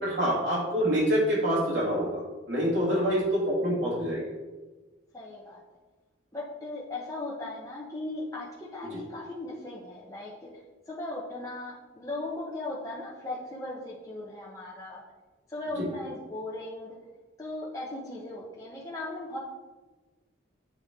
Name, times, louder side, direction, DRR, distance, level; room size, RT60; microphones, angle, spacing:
voice 1, 0.0-2.2 2.5-4.2 8.9-9.0 15.8-15.9, equal, 70° right, -8 dB, 2.0 m, -26 dB
voice 2, 2.9-3.2 5.1-5.6 6.3-10.5 10.9-15.0 15.5-17.0 17.4-19.4, left 2 dB, 15° left, -5 dB, 0.9 m, -38 dB
8.2 x 4.3 x 3.6 m, 1.2 s
head